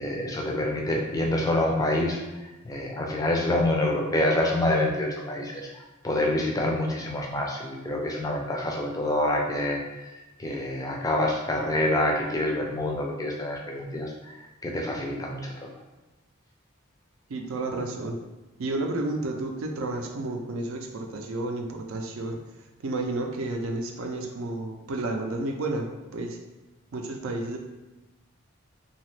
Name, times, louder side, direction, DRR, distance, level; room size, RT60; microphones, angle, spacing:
voice 1, 0.0-15.7, left 1 dB, 15° left, -1 dB, 0.3 m, -27 dB
voice 2, 17.3-18.2 18.6-26.4 26.9-27.6, right 2 dB, 75° right, 4 dB, 0.4 m, -31 dB
2.8 x 2.3 x 3.1 m, 1.1 s
head